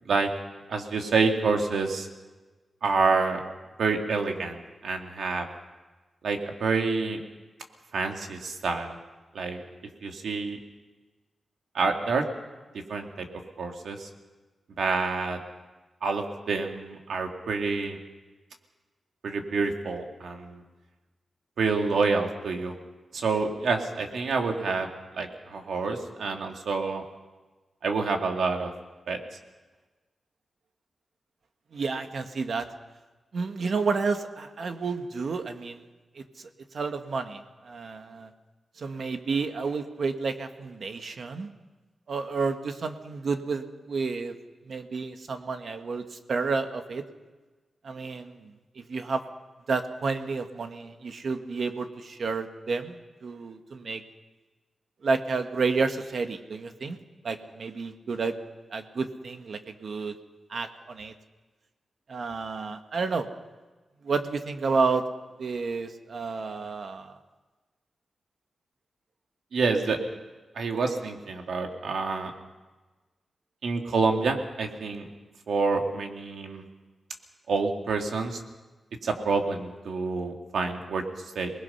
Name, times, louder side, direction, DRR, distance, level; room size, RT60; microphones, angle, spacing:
voice 1, 0.7-2.1 2.8-3.4 3.8-5.5 6.2-7.2 7.9-9.0 9.3-9.6 10.0-10.6 11.7-12.3 12.9-13.3 13.6-14.1 14.8-15.4 16.0-18.0 19.2-20.6 21.6-22.8 23.1-24.9 25.1-27.0 27.8-28.7 29.1-29.2 69.5-70.0 70.6-72.3 73.6-75.0 75.5-76.6 77.5-78.4 79.0-81.0 81.3-81.5, right 4 dB, 85° right, 3 dB, 2.3 m, -27 dB
voice 2, 31.7-32.7 33.3-35.8 36.1-36.5 36.7-38.3 38.8-41.5 42.1-44.3 44.7-47.0 47.8-49.2 49.7-54.0 55.0-57.0 57.2-58.3 58.7-60.1 60.5-61.1 62.1-63.3 64.0-65.1 65.4-67.2, right 4 dB, 55° right, 7 dB, 1.5 m, -30 dB
27.5 x 20.0 x 5.6 m, 1.2 s
wide cardioid pair, 155°, 0 cm